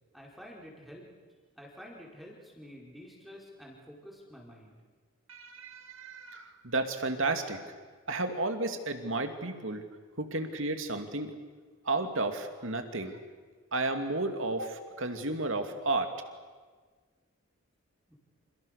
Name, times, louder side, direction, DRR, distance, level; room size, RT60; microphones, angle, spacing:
voice 1, 0.1-1.1 1.6-4.8 18.1-18.2, equal, ahead, -2 dB, 4.7 m, -49 dB
voice 2, 5.3-7.6 8.1-9.8 10.2-11.4 11.8-13.2 13.7-16.1, right 2 dB, 65° right, 6 dB, 2.7 m, -32 dB
29.5 x 28.0 x 6.7 m, 1.5 s
head